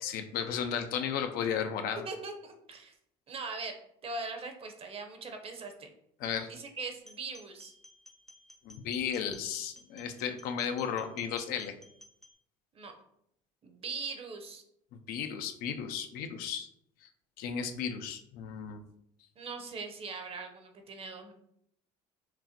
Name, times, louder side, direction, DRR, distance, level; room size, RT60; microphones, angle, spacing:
voice 1, 0.0-2.0 6.2-6.5 8.6-11.7 14.9-16.7 17.0-17.1 17.4-18.8, left 7 dB, 65° left, 7 dB, 0.5 m, -34 dB
voice 2, 2.0-2.9 3.3-3.7 4.0-5.9 6.5-7.7 12.7-12.9 13.6-14.6 19.4-21.3, right 4 dB, 35° right, 5 dB, 0.8 m, -41 dB
sound 1, 7.0-12.3, left 1 dB, ahead, 0.5 m, -56 dB
5.9 x 2.1 x 2.8 m, 0.73 s
supercardioid pair, 95°, 17 cm